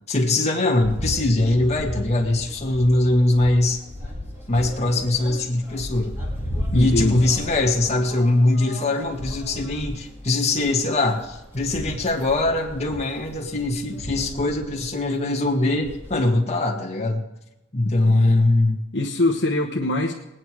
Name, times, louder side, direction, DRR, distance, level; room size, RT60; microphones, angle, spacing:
voice 1, 0.1-3.8 4.5-6.2 6.7-17.2 17.7-18.8, left 2 dB, 30° left, -1 dB, 1.9 m, -21 dB
sound 1, 0.8-15.0 15.3-15.4 15.6-16.3, left 1 dB, 10° right, 2.4 m, -34 dB
voice 2, 6.7-7.2 18.1-18.3 18.9-20.1, left 2 dB, 55° left, 0 dB, 1.1 m, -23 dB
19.5 x 9.5 x 4.7 m, 0.94 s
head